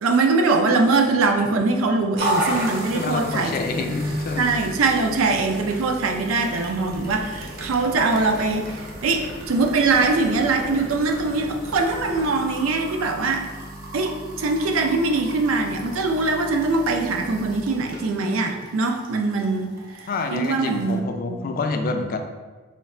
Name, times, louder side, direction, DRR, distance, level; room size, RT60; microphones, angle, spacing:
voice 1, 0.0-3.8 4.4-13.5 13.9-21.4, right 3 dB, 85° right, 3 dB, 0.5 m, -22 dB
sound 1, 2.2-21.0, right 1 dB, 45° right, 0.7 m, -35 dB
voice 2, 2.9-4.5 20.1-22.2, left 3 dB, 45° left, 5 dB, 0.3 m, -27 dB
sound 2, 6.8-12.3, equal, 70° right, 1.0 m, -39 dB
3.1 x 2.4 x 4.2 m, 1.3 s
head